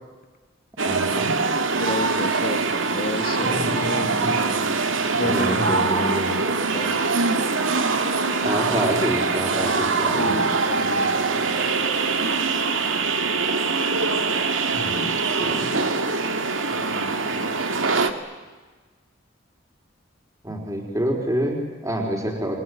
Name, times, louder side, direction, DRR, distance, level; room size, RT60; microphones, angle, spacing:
voice 1, 0.8-1.4 3.4-4.3 4.8-4.9 5.2-6.4 8.4-10.4 14.7-15.8 20.4-22.6, equal, 15° right, 2 dB, 4.4 m, -27 dB
sound 1, 0.8-18.1, right 4 dB, 85° right, 2.1 m, -23 dB
voice 2, 1.8-4.6 5.1-6.2 6.7-7.1 8.8-8.9 10.2-11.9 16.7-18.1, left 2 dB, 50° left, 8 dB, 2.1 m, -32 dB
28.5 x 22.0 x 9.6 m, 1.3 s
head